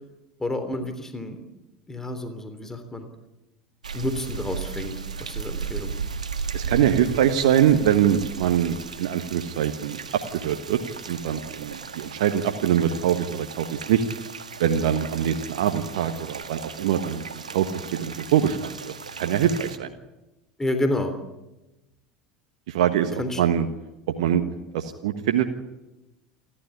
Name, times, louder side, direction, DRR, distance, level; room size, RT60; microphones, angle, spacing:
voice 1, 0.4-1.4 1.9-3.1 3.9-5.9 20.6-21.1 23.2-23.4, left 1 dB, 10° left, 8 dB, 3.3 m, -29 dB
sound 1, 3.8-19.8, right 5 dB, 80° right, 1.6 m, -36 dB
voice 2, 6.5-10.8 11.1-14.0 14.6-19.9 22.7-23.7 24.2-24.4 24.7-25.4, right 10 dB, 65° right, 6 dB, 1.5 m, -23 dB
29.0 x 12.5 x 10.0 m, 1.0 s
figure-of-eight pair, 75°, 4 cm